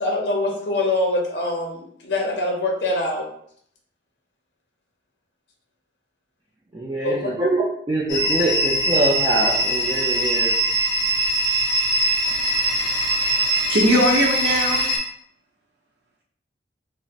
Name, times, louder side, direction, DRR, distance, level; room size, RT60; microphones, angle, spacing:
voice 1, 0.0-3.3 7.0-7.3, left 2 dB, 65° left, 0 dB, 0.6 m, -24 dB
voice 2, 6.7-10.5, right 1 dB, 20° right, -5 dB, 0.3 m, -24 dB
sound 1, 8.1-15.0, right 1 dB, 25° left, 0.7 m, -22 dB
voice 3, 12.2-14.9, equal, 65° right, -1 dB, 0.7 m, -22 dB
2.4 x 2.0 x 3.9 m, 0.66 s
head